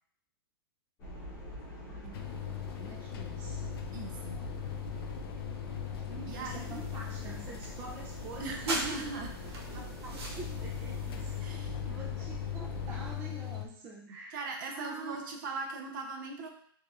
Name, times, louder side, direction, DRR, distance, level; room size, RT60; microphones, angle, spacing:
sound 1, 1.0-13.2, right 1 dB, 20° left, 1.0 m, -43 dB
voice 1, 1.8-2.3 2.8-3.6 6.1-9.2 9.7-14.4 14.7-15.2, right 4 dB, 15° right, -1 dB, 0.3 m, -46 dB
sound 2, 2.1-13.7, left 14 dB, 70° left, 0.5 m, -40 dB
voice 2, 3.9-4.4 6.3-6.8 8.4-9.3 11.4-11.8 14.1-16.5, right 3 dB, 55° right, 3 dB, 0.7 m, -39 dB
sound 3, 6.3-11.4, right 2 dB, 85° right, 1.1 m, -42 dB
4.5 x 2.9 x 2.4 m, 0.62 s
supercardioid pair, 165°, 13 cm